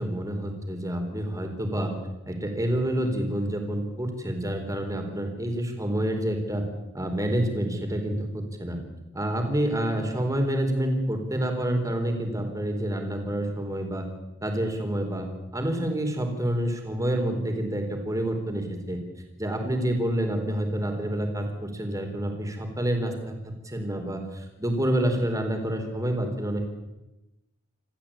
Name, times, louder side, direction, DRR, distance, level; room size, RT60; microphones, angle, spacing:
voice 1, 0.0-1.9 2.3-6.6 6.9-8.8 9.1-14.1 14.4-15.3 15.5-19.0 19.4-26.6, right 1 dB, 15° right, 4 dB, 4.1 m, -28 dB
27.0 x 14.5 x 8.8 m, 1.0 s
head